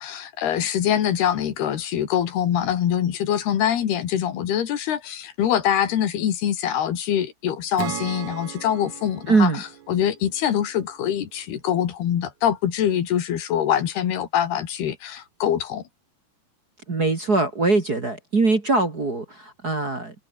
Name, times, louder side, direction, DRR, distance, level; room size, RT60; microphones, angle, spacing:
voice 1, 0.0-15.8, left 10 dB, 80° left, 4.3 m, -24 dB
Acoustic guitar / Strum, 7.8-11.2, right 12 dB, 60° right, 2.4 m, -36 dB
voice 2, 9.3-9.6 16.9-20.1, right 3 dB, 30° right, 2.2 m, -22 dB
omnidirectional pair, 4.6 m